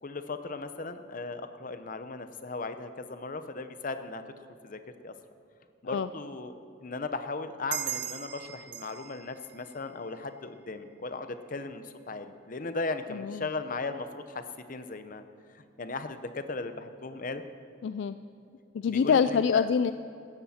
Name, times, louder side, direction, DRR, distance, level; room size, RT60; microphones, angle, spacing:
voice 1, 0.0-5.1 5.8-14.4 14.7-15.2 15.6-17.4 18.9-19.7, left 3 dB, 45° left, 9 dB, 0.8 m, -37 dB
sound 1, 7.7-10.8, right 12 dB, 60° right, 0.9 m, -39 dB
voice 2, 13.1-13.5 17.8-18.2 18.7-19.9, left 6 dB, 65° left, 12 dB, 0.3 m, -25 dB
16.5 x 13.5 x 4.3 m, 2.5 s
head